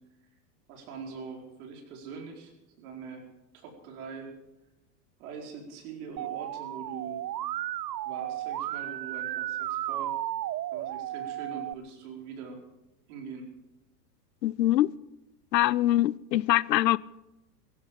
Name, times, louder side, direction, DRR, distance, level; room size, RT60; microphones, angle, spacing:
voice 1, 0.7-3.2 3.5-4.3 5.2-7.3 8.0-10.1 10.7-12.6 13.1-13.5, right 5 dB, 60° right, 4.9 m, -43 dB
Musical instrument, 6.2-11.7, right 14 dB, 90° right, 0.6 m, -34 dB
voice 2, 14.4-14.9 15.5-17.0, left 14 dB, 85° left, 0.6 m, -23 dB
17.0 x 16.0 x 5.2 m
hypercardioid pair, 110°, 49 cm